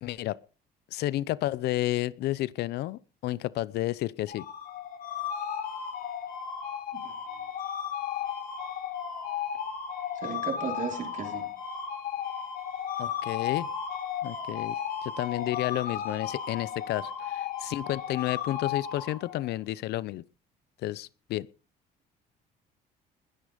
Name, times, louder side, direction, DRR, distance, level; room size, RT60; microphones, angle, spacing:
voice 1, 0.0-0.4 0.9-4.4 13.0-13.7 14.2-20.2 20.8-21.5, left 15 dB, 75° left, 0.8 m, -31 dB
sound 1, 4.3-19.5, left 8 dB, 60° left, 5.2 m, -34 dB
voice 2, 10.2-11.5, right 6 dB, 50° right, 4.8 m, -35 dB
20.5 x 10.5 x 5.2 m
cardioid pair, 110°, 17 cm